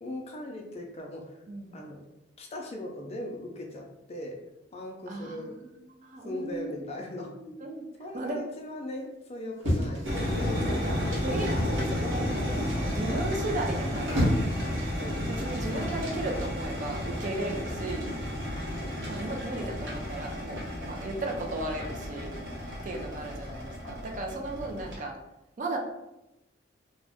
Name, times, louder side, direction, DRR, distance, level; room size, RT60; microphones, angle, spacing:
voice 1, 0.0-1.4 1.7-2.0 2.4-4.4 4.7-5.5 6.2-7.3 8.0-10.5 15.0-15.2 18.8-19.1 23.1-23.2, left 1 dB, 35° left, 1 dB, 0.4 m, -39 dB
voice 2, 1.5-1.8 5.1-6.7 7.3-7.8 8.1-8.4 10.6-14.3 15.3-18.1 19.0-22.3 22.8-25.2 25.6-25.8, right 2 dB, 40° right, 2 dB, 0.4 m, -36 dB
sound 1, 9.6-10.7 11.4-11.8 13.7-14.6 15.6-15.9, left 1 dB, 90° right, 1.1 m, -29 dB
sound 2, 10.0-25.0, left 1 dB, 70° right, 0.8 m, -32 dB
2.5 x 2.1 x 3.4 m, 0.92 s
head